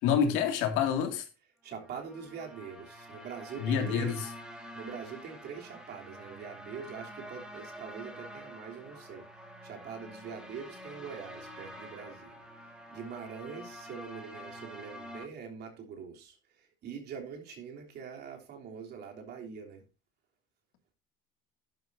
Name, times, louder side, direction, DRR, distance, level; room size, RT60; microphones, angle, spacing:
voice 1, 0.0-1.3 3.6-4.2, left 7 dB, 70° left, 2.4 m, -27 dB
voice 2, 1.6-4.3 4.7-9.3 9.6-12.3 12.9-19.8, right 6 dB, 55° right, 3.3 m, -44 dB
sound 1, 1.7-15.2, equal, 5° right, 2.5 m, -47 dB
11.0 x 11.0 x 2.7 m
supercardioid pair, 115°, 21 cm